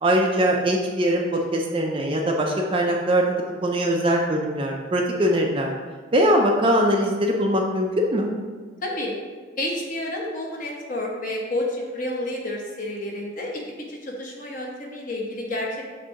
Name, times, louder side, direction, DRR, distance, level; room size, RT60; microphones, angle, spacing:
voice 1, 0.0-5.7 6.1-8.3, equal, 25° right, 1 dB, 0.4 m, -22 dB
voice 2, 8.8-9.1 9.6-13.6 13.9-15.9, left 1 dB, 40° left, -2 dB, 1.0 m, -30 dB
6.2 x 2.7 x 5.6 m, 1.5 s
head